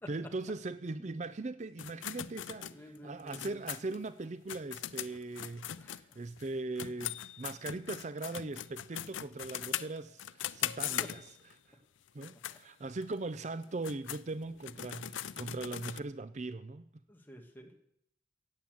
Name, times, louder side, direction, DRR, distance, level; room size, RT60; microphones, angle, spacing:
voice 1, 0.1-11.3 11.7-11.8 12.1-16.9, right 3 dB, 40° right, 0.5 m, -40 dB
sound 1, 1.8-6.5 6.8-11.5 12.1-12.6 13.0-13.1 13.6-16.0, left 11 dB, 85° left, 0.5 m, -40 dB
voice 2, 2.6-3.6 5.8-6.2 11.0-11.1 12.5-12.6 17.1-17.7, left 1 dB, 10° left, 1.8 m, -51 dB
16.0 x 8.6 x 7.8 m
head